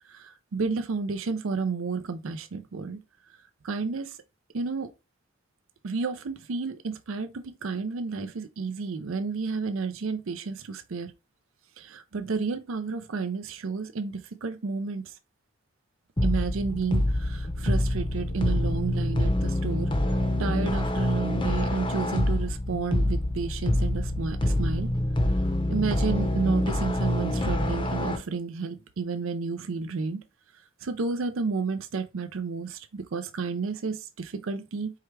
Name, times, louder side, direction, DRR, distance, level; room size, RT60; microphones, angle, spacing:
voice 1, 0.0-3.0 3.6-4.2 4.5-4.9 5.8-11.1 11.8-15.2 16.2-19.9 20.4-24.9 25.7-30.2 30.8-34.9, right 4 dB, 75° right, 0.5 m, -31 dB
sound 1, 16.2-28.2, left 1 dB, 25° left, 0.6 m, -26 dB
4.6 x 3.4 x 3.2 m
head